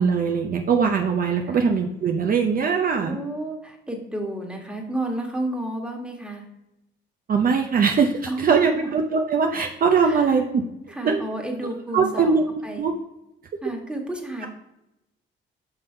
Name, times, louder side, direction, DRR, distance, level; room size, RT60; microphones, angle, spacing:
voice 1, 0.0-3.2 7.3-10.6 11.0-11.2 11.9-12.4 12.8-12.9, right 5 dB, 45° right, 3 dB, 0.6 m, -21 dB
voice 2, 3.0-6.5 8.3-8.9 10.0-10.4 10.9-12.3 12.6-12.9 13.6-14.5, right 1 dB, 5° right, 1 dB, 1.5 m, -31 dB
5.5 x 5.3 x 4.4 m, 0.91 s
cardioid pair, 90°, 20 cm